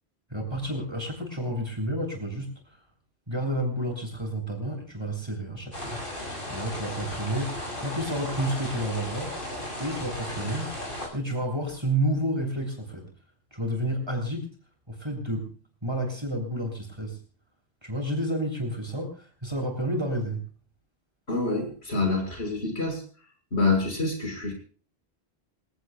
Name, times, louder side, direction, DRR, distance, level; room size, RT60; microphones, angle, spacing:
voice 1, 0.3-2.8 3.3-6.0 6.5-9.4 9.8-10.7 11.1-13.1 13.5-14.5 14.9-15.6 15.8-17.2 17.8-20.4, right 1 dB, 25° right, 2 dB, 7.6 m, -30 dB
sound 1, 5.7-11.1, left 1 dB, 55° left, 7.5 m, -35 dB
voice 2, 21.3-23.0 23.5-24.5, left 3 dB, 70° left, 3 dB, 6.6 m, -26 dB
26.5 x 17.5 x 2.5 m, 0.41 s
omnidirectional pair, 1.1 m